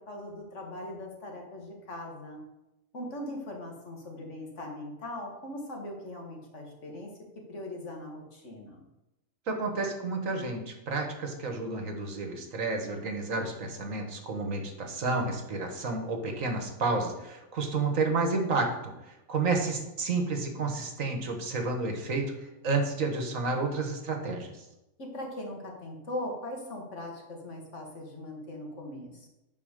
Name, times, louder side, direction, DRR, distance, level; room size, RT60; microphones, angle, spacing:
voice 1, 0.1-2.4 2.9-7.1 7.5-8.8 25.0-29.3, left 1 dB, 60° left, 1 dB, 2.1 m, -40 dB
voice 2, 9.5-24.5, right 3 dB, 75° right, 4 dB, 1.7 m, -31 dB
9.8 x 4.5 x 6.6 m, 0.94 s
omnidirectional pair, 1.4 m